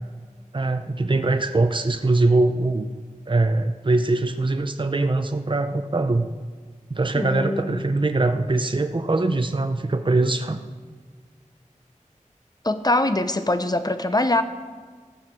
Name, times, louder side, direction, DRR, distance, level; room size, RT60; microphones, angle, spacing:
voice 1, 0.5-2.9 3.3-6.3 6.9-10.6, right 2 dB, 40° right, 8 dB, 0.7 m, -22 dB
voice 2, 7.1-7.8 12.6-14.4, left 2 dB, 30° left, 10 dB, 0.8 m, -23 dB
14.5 x 7.3 x 6.2 m, 1.5 s
wide cardioid pair, 50°, 13 cm